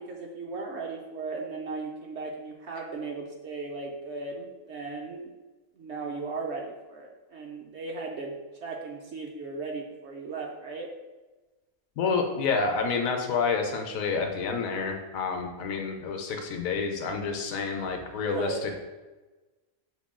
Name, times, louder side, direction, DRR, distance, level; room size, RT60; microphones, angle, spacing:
voice 1, 0.0-5.3 5.8-10.9 18.3-18.6, right 3 dB, 65° right, 0 dB, 0.7 m, -37 dB
voice 2, 12.0-18.7, left 4 dB, 75° left, 4 dB, 1.0 m, -29 dB
6.0 x 2.2 x 3.6 m, 1.2 s
omnidirectional pair, 1.5 m